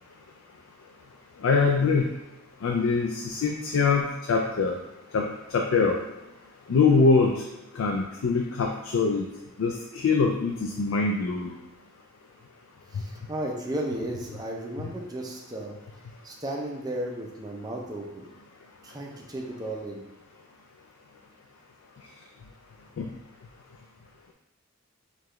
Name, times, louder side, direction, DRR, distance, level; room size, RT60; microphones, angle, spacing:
voice 1, 1.4-2.1 2.6-4.8 5.1-5.3 5.5-6.0 6.7-7.3 7.8-9.2 9.6-11.5 23.0-23.1, left 4 dB, 75° left, 1 dB, 0.4 m, -23 dB
voice 2, 12.9-15.7 16.2-18.3 18.8-20.0, right 1 dB, 20° right, -1 dB, 0.5 m, -34 dB
4.7 x 2.4 x 3.1 m, 0.98 s
head